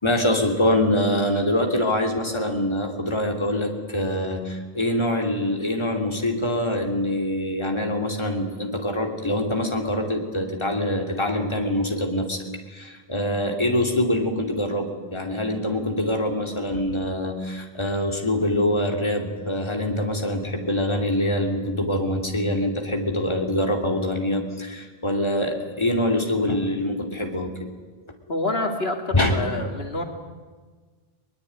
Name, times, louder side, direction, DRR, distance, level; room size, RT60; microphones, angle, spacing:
voice 1, 0.0-12.4 12.7-27.7 29.1-29.4, left 1 dB, 25° left, 2 dB, 2.9 m, -24 dB
voice 2, 28.3-30.0, left 2 dB, 75° left, 3 dB, 2.8 m, -27 dB
22.0 x 21.0 x 9.5 m, 1.4 s
omnidirectional pair, 1.0 m